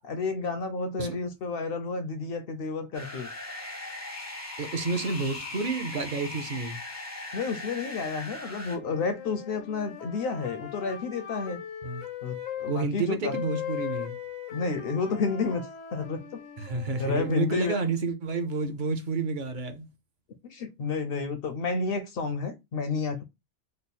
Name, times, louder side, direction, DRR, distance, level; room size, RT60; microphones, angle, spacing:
voice 1, 0.0-3.3 7.3-11.6 12.2-13.3 14.5-16.4 17.0-17.8 20.4-23.2, left 4 dB, 60° left, 0.6 m, -31 dB
sound 1, 2.9-8.8, left 2 dB, 20° left, 0.5 m, -39 dB
voice 2, 4.6-6.8 11.8-12.0 12.7-14.2 16.6-19.9, right 4 dB, 50° right, 0.6 m, -30 dB
sound 2, 8.7-12.8 13.3-17.5, left 9 dB, 85° left, 1.1 m, -39 dB
3.2 x 2.0 x 4.0 m
omnidirectional pair, 1.3 m